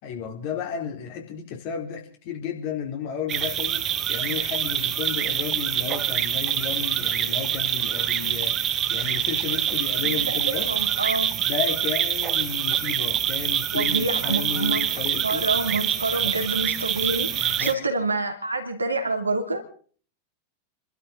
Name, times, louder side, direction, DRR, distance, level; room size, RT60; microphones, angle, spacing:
voice 1, 0.0-10.7 11.4-15.5 16.2-16.4 17.4-17.8, left 7 dB, 45° left, 4.1 m, -33 dB
sound 1, 3.3-17.7, right 10 dB, 30° right, 1.0 m, -25 dB
voice 2, 10.0-11.3 13.7-14.9 15.2-19.6, right 3 dB, 80° right, 2.8 m, -27 dB
29.0 x 12.5 x 3.9 m
figure-of-eight pair, 90°, 0 cm